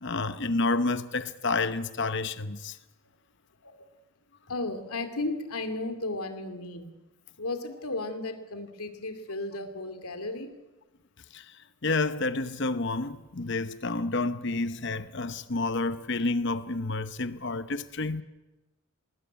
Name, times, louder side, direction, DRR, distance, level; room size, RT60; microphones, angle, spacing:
voice 1, 0.0-2.8 11.3-11.4 11.8-18.2, left 3 dB, 50° left, 0.9 m, -29 dB
voice 2, 4.5-6.9 7.4-10.5, left 2 dB, 80° left, 2.7 m, -34 dB
20.0 x 19.5 x 9.4 m
head